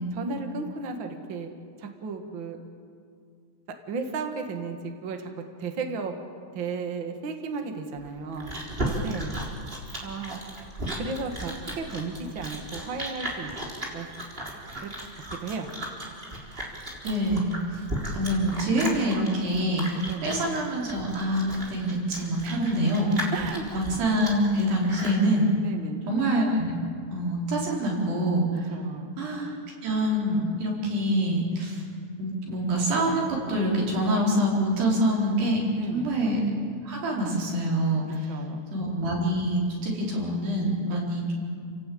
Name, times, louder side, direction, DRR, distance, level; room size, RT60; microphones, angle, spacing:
voice 1, 0.1-1.5 1.8-2.6 3.9-5.3 5.6-6.1 6.5-8.5 9.0-9.4 10.0-10.4 11.0-13.5 13.9-14.1 14.8-14.9 15.3-15.7 20.0-20.3 22.4-22.8 23.3-23.6 25.6-26.0 28.7-29.1 35.7-36.1 38.3-38.7 40.9-41.0, right 4 dB, 40° right, 4 dB, 2.0 m, -34 dB
Chewing mastication, 8.0-25.2, right 1 dB, 15° right, 3.6 m, -35 dB
voice 2, 17.0-17.8 18.1-19.9 20.2-23.1 23.7-25.5 26.1-26.7 27.1-28.7 29.2-31.8 32.2-35.6 35.9-36.4 36.8-38.3 38.7-41.7, right 1 dB, 85° right, -2 dB, 6.5 m, -26 dB
30.0 x 18.0 x 8.7 m, 2.3 s
omnidirectional pair, 4.6 m